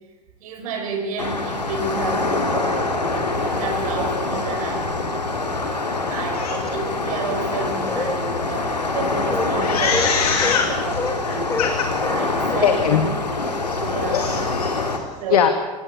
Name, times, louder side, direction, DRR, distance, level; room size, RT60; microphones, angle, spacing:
voice 1, 0.4-5.4 6.1-10.3 10.7-11.0 11.3-11.5 12.1-13.1 13.8-14.2 15.2-15.5, right 4 dB, 60° right, 5 dB, 5.4 m, -31 dB
sound 1, 1.2-15.0, left 3 dB, 85° left, 3.0 m, -25 dB
voice 2, 5.9-6.6 9.6-11.9 12.6-13.0 13.5-15.5, left 7 dB, 65° left, 7 dB, 2.1 m, -23 dB
sound 2, 6.5-8.5 9.1-13.0, left 3 dB, 15° left, 4.1 m, -30 dB
25.0 x 20.0 x 8.1 m, 1.3 s
figure-of-eight pair, 85°, 20 cm